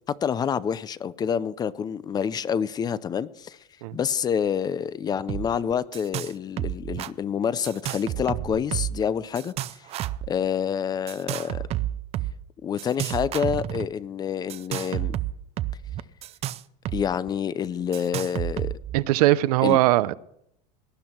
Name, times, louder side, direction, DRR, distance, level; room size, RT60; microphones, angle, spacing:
voice 1, 0.1-3.6 3.9-9.5 10.3-11.6 12.6-15.1 16.9-18.7 19.6-19.8, left 7 dB, 20° left, 0.4 m, -27 dB
sound 1, 5.3-5.5 5.7-6.3 6.6-7.1 7.6-9.0 9.4-10.3 11.1-12.3 12.8-13.9 14.5-17.0 17.3-17.4 17.9-19.0, right 13 dB, 35° right, 0.5 m, -30 dB
voice 2, 18.9-20.1, right 16 dB, 85° right, 0.7 m, -20 dB
18.5 x 10.5 x 4.4 m
supercardioid pair, 145°, 19 cm